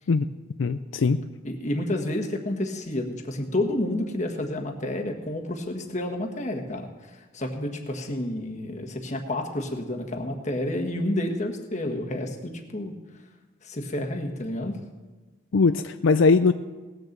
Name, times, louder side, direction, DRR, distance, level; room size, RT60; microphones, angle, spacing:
voice 1, 0.6-1.2 15.5-16.5, left 4 dB, 80° left, 10 dB, 0.4 m, -20 dB
voice 2, 1.4-6.9 7.3-12.9 13.6-14.8, left 1 dB, 35° left, 4 dB, 1.4 m, -30 dB
18.5 x 6.7 x 7.3 m, 1.3 s
head